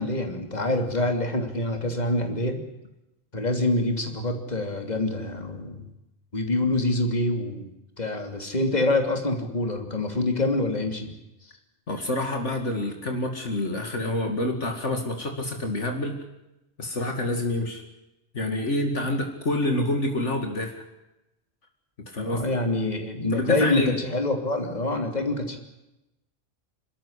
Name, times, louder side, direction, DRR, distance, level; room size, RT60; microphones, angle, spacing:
voice 1, 0.0-2.6 3.3-5.8 6.3-7.7 8.0-11.1 11.4-11.5 22.2-25.6, left 2 dB, 30° left, 4 dB, 3.2 m, -26 dB
voice 2, 11.9-16.2 16.8-17.8 18.3-20.8 22.1-22.4 23.3-23.9, left 1 dB, 65° left, 4 dB, 2.6 m, -27 dB
28.0 x 13.5 x 10.0 m, 0.94 s
omnidirectional pair, 1.3 m